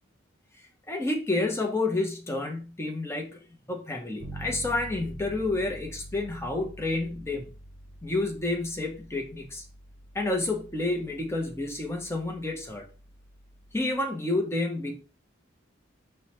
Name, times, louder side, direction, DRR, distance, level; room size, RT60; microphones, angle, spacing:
voice 1, 0.9-3.4 3.7-7.5 8.0-9.6 10.1-12.9 13.7-15.0, left 2 dB, 15° left, 0.6 m, -29 dB
Bass guitar, 4.2-13.9, right 1 dB, 55° right, 0.7 m, -46 dB
4.7 x 2.1 x 2.9 m
head